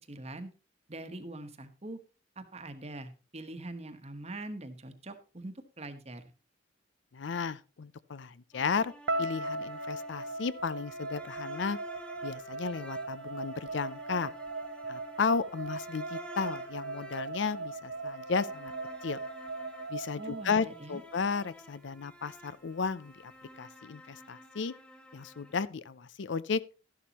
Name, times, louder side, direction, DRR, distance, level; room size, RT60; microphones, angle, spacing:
voice 1, 0.1-0.5 0.9-2.0 2.4-6.2 20.2-21.0, right 2 dB, 35° right, 1.2 m, -43 dB
voice 2, 7.1-8.9 9.2-11.8 12.2-14.3 14.9-18.7 19.0-19.2 19.9-24.7 25.1-26.7, left 5 dB, 70° left, 0.5 m, -34 dB
sound 1, 8.5-25.7, right 1 dB, 5° left, 0.9 m, -51 dB
sound 2, 9.1-21.2, right 2 dB, 75° right, 0.8 m, -39 dB
13.0 x 11.0 x 3.0 m
head